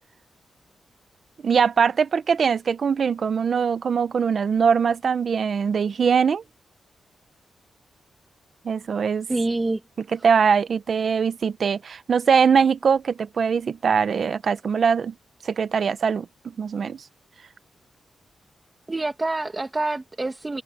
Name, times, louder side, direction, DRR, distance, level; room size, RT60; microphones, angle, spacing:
voice 1, 1.4-6.4 8.6-9.3 10.1-15.1 15.4-16.3 16.6-17.0, right 6 dB, 50° right, 0.8 m, -22 dB
voice 2, 9.3-9.8 18.9-20.6, right 2 dB, 20° right, 1.3 m, -26 dB
wide cardioid pair, 140°, 0 cm